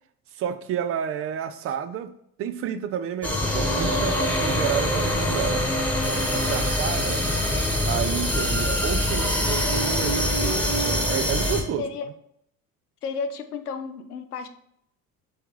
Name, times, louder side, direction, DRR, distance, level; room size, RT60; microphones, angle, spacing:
voice 1, 0.3-2.1 2.4-5.7 6.1-7.2 7.9-11.9, right 9 dB, 30° right, 11 dB, 0.5 m, -30 dB
sound 1, 3.2-11.6, left 1 dB, 5° left, 1.2 m, -24 dB
voice 2, 11.8-12.1 13.0-14.5, left 5 dB, 80° left, 8 dB, 0.7 m, -32 dB
7.5 x 3.4 x 4.7 m, 0.71 s
figure-of-eight pair, 60°, 45 cm